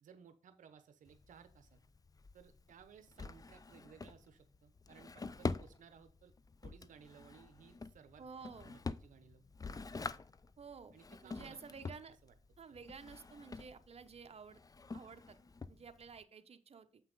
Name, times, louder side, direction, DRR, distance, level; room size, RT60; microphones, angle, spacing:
voice 1, 0.0-1.8 2.3-6.3 6.6-8.2 8.6-9.4 10.9-11.6 12.1-12.3 12.7-12.8, right 7 dB, 80° right, 10 dB, 0.7 m, -60 dB
Drawer open or close, 1.1-16.2, left 4 dB, 30° left, 0.5 m, -46 dB
voice 2, 8.2-8.8 10.6-10.9 11.2-12.2 12.6-14.6 14.9-15.4 15.7-16.9, right 5 dB, 50° right, 8 dB, 0.9 m, -52 dB
7.6 x 5.7 x 3.9 m, 0.41 s
cardioid pair, 60°, 13 cm